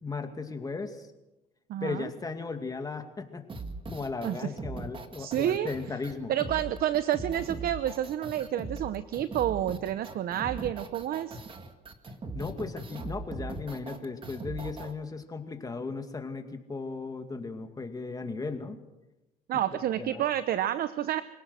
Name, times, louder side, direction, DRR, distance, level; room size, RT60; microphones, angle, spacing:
voice 1, 0.0-1.1 1.8-3.5 3.9-6.3 12.3-18.8 20.0-20.2, left 4 dB, 20° left, 6 dB, 2.3 m, -36 dB
voice 2, 1.7-2.1 4.2-4.5 5.2-5.7 6.3-11.4 19.5-21.2, right 11 dB, 65° right, 13 dB, 0.8 m, -29 dB
sound 1, 3.5-14.9, right 3 dB, 30° right, 2.0 m, -40 dB
25.5 x 17.5 x 6.4 m, 1.0 s
cardioid pair, 110°, 17 cm